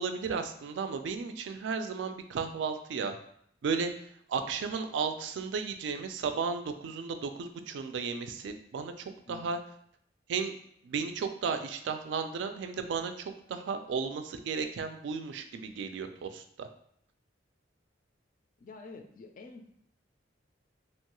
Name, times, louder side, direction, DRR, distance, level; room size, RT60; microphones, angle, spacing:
voice 1, 0.0-3.1 3.6-3.9 4.3-9.6 10.3-10.5 10.8-16.7, right 5 dB, 70° right, 7 dB, 0.3 m, -34 dB
voice 2, 18.6-19.7, left 3 dB, 45° left, 5 dB, 0.3 m, -48 dB
2.9 x 2.2 x 2.9 m, 0.67 s
head